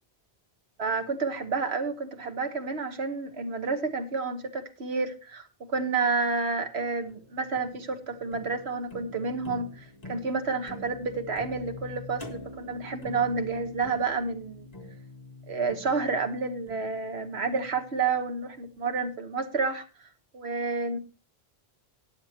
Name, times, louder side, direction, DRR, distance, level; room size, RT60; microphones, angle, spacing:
voice 1, 0.8-5.5 5.7-14.7 15.5-19.8 20.3-21.0, right 4 dB, 80° right, 7 dB, 1.6 m, -30 dB
sound 1, 7.1-18.3, left 2 dB, 40° left, 1.8 m, -45 dB
19.5 x 7.4 x 2.9 m, 0.32 s
omnidirectional pair, 1.1 m